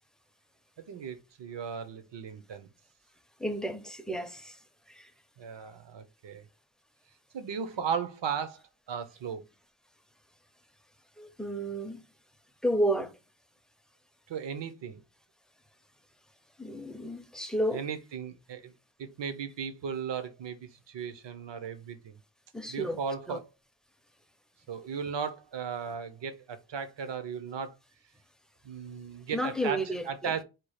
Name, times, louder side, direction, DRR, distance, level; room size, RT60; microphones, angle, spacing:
voice 1, 0.8-2.7 5.4-6.4 7.3-9.4 14.3-15.0 17.7-18.7 19.0-22.2 22.7-23.5 24.7-27.7 28.6-30.4, right 6 dB, 60° right, 0.8 m, -36 dB
voice 2, 3.4-4.6 4.9-5.1 11.2-12.0 12.6-13.1 16.6-17.8 22.5-23.0 23.3-23.4 29.3-30.3, right 1 dB, ahead, 0.5 m, -31 dB
4.5 x 2.3 x 4.8 m
wide cardioid pair, 100°, 49 cm